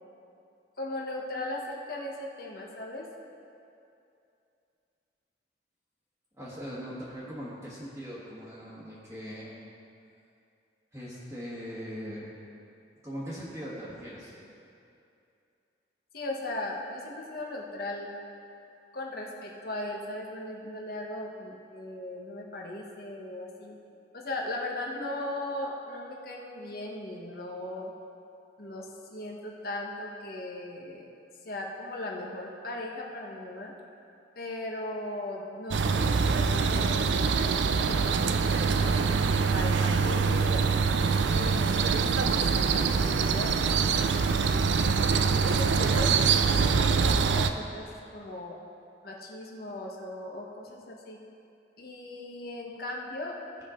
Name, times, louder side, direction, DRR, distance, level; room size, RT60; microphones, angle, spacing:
voice 1, 0.8-3.1 16.1-18.1 18.9-23.8 24.1-27.9 28.6-31.1 31.4-33.7 34.3-37.3 37.8-44.9 45.4-47.9 48.1-48.6 49.0-51.2 51.8-53.4, left 1 dB, 55° left, -1 dB, 1.3 m, -38 dB
voice 2, 6.4-9.6 10.9-12.3 13.0-14.3, equal, 15° right, -11 dB, 1.4 m, -40 dB
sound 1, 35.7-47.5, right 5 dB, 80° right, 0.4 m, -24 dB
16.5 x 5.6 x 3.8 m, 2.6 s
head